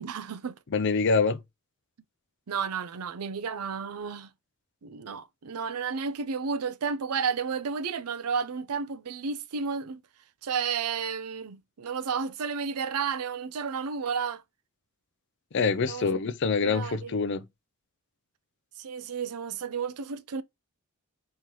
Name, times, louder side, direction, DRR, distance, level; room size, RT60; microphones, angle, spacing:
voice 1, 0.0-0.5 2.5-4.3 4.8-10.0 10.4-14.4 15.9-16.1 16.6-17.1 18.8-20.4, right 6 dB, 85° right, 0.5 m, -32 dB
voice 2, 0.7-1.4 15.5-17.4, left 4 dB, 55° left, 0.5 m, -25 dB
4.4 x 3.0 x 3.7 m
head